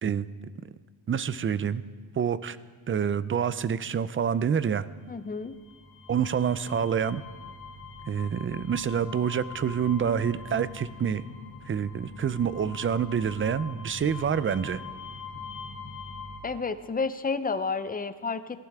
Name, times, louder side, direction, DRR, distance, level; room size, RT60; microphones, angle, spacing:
voice 1, 1.1-1.8 2.2-2.6 2.9-4.9 6.1-7.2 8.1-11.2 11.7-14.8, right 7 dB, 30° right, 16 dB, 0.4 m, -27 dB
voice 2, 5.1-5.6 16.4-18.6, left 4 dB, 20° left, 11 dB, 0.5 m, -31 dB
sound 1, 5.4-16.4, left 4 dB, 40° left, 5.2 m, -43 dB
18.0 x 15.0 x 3.5 m, 1.5 s
cardioid pair, 120°, 48 cm